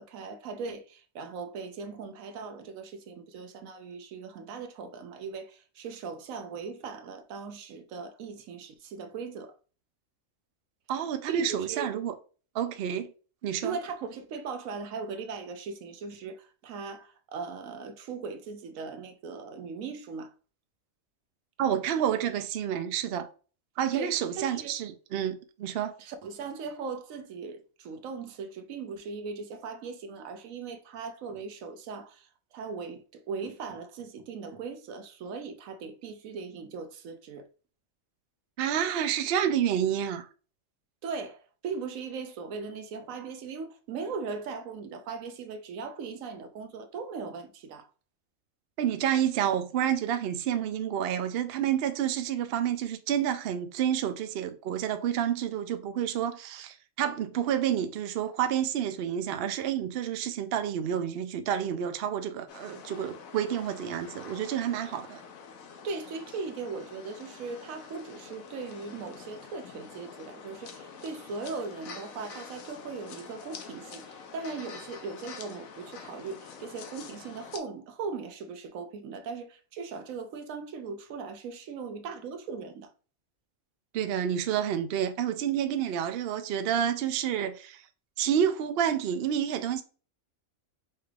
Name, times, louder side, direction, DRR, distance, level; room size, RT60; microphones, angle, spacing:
voice 1, 0.0-9.5 11.3-11.9 13.6-20.3 23.9-24.7 26.0-37.5 41.0-47.9 65.8-82.9, right 4 dB, 80° right, 1.1 m, -39 dB
voice 2, 10.9-12.1 12.5-13.1 13.4-13.8 21.6-23.3 23.8-25.9 38.6-40.3 48.8-65.2 83.9-87.8 88.2-89.8, right 9 dB, 60° right, 0.6 m, -29 dB
sound 1, 62.5-77.6, left 6 dB, 80° left, 1.2 m, -46 dB
5.7 x 3.3 x 2.3 m
omnidirectional pair, 1.4 m